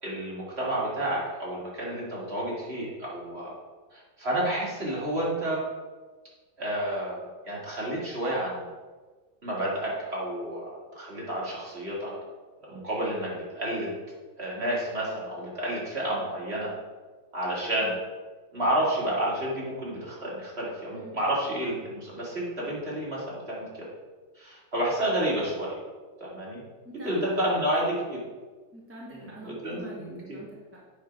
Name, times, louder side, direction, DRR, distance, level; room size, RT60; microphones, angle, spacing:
voice 1, 0.0-3.5 3.9-5.6 6.6-8.6 9.4-12.1 12.6-13.9 14.4-16.7 17.3-18.0 18.5-23.9 24.4-25.8 26.2-26.6 27.0-28.2 29.1-30.4, right 1 dB, 30° right, -6 dB, 2.5 m, -30 dB
voice 2, 26.8-27.3 27.9-28.0 28.7-30.9, right 1 dB, 10° right, -5 dB, 1.0 m, -45 dB
8.3 x 3.8 x 5.9 m, 1.3 s
omnidirectional pair, 2.1 m